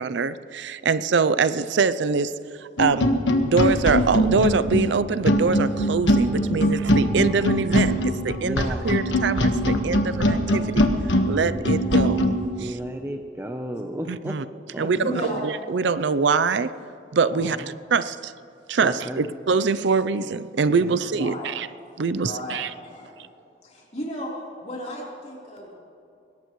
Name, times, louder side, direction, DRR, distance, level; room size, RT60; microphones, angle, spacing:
voice 1, 0.0-2.3 2.6-3.1 3.4-10.9 11.3-12.3 12.6-12.8 14.1-14.4 14.8-16.7 17.1-18.3 18.7-21.7 22.0-22.7, right 5 dB, 70° right, 15 dB, 0.5 m, -24 dB
sound 1, 2.8-12.4, equal, 80° left, 1.4 m, -21 dB
voice 2, 8.4-8.9 11.5-11.8 12.6-14.4 14.7-14.9 17.5-17.8 18.8-19.3 20.8-21.3, equal, 15° right, 4 dB, 0.7 m, -34 dB
voice 3, 10.3-10.9 11.2-11.3 15.0-15.4 17.3-17.6 21.2-21.5 22.1-22.6 22.8-23.3 23.6-25.8, equal, 35° left, -4 dB, 3.7 m, -35 dB
21.0 x 18.0 x 3.1 m, 2.6 s
head